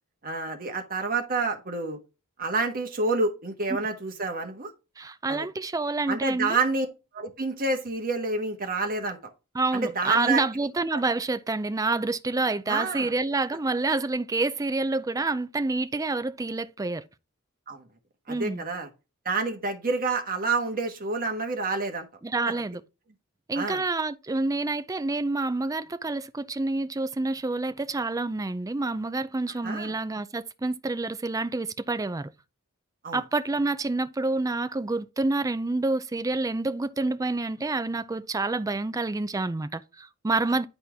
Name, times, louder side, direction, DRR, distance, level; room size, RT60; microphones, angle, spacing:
voice 1, 0.2-2.0 2.4-4.7 5.3-5.5 6.1-6.9 7.1-9.2 9.7-10.4 12.7-13.1 17.7-17.8 18.3-18.9 19.2-22.1 22.5-22.6 23.5-23.8 29.6-29.9 33.0-33.2, right 3 dB, 40° right, 1.3 m, -28 dB
voice 2, 5.0-6.6 9.5-17.0 18.3-18.6 22.2-22.8 23.5-32.3 33.1-40.7, right 3 dB, 15° right, 0.4 m, -28 dB
10.0 x 4.3 x 3.5 m
head